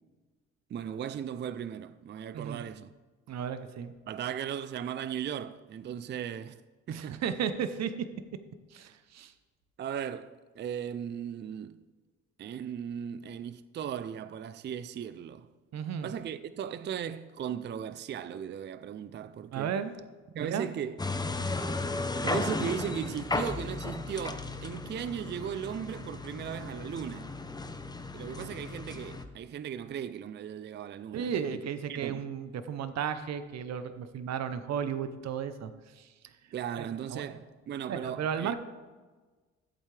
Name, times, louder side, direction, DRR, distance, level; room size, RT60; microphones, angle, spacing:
voice 1, 0.7-2.9 4.1-6.6 6.9-7.2 9.8-11.8 12.4-15.5 16.0-19.7 20.3-21.0 22.2-27.3 28.1-31.3 31.9-32.2 36.5-38.5, right 8 dB, 35° right, 0.4 m, -37 dB
voice 2, 3.3-3.9 6.9-7.9 8.7-9.3 15.7-16.1 19.5-19.9 20.4-20.7 28.4-28.5 31.1-35.7 36.0-36.1 36.8-37.4 37.9-38.5, right 8 dB, 60° right, 0.8 m, -34 dB
sound 1, 21.0-29.2, left 3 dB, 15° left, 0.7 m, -35 dB
14.5 x 8.1 x 3.3 m
cardioid pair, 90°, 30 cm